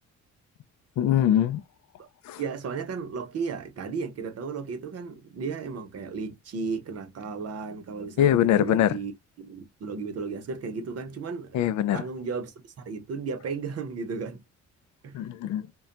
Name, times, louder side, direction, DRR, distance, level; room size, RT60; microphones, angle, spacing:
voice 1, 1.0-1.6 2.2-2.4 8.2-9.0 11.5-12.0 15.1-15.6, left 11 dB, 70° left, 0.4 m, -22 dB
voice 2, 2.4-9.1 9.4-11.6 11.9-14.4 15.0-15.1, right 5 dB, 55° right, 0.8 m, -34 dB
2.2 x 2.2 x 3.8 m
cardioid pair, 90°, 30 cm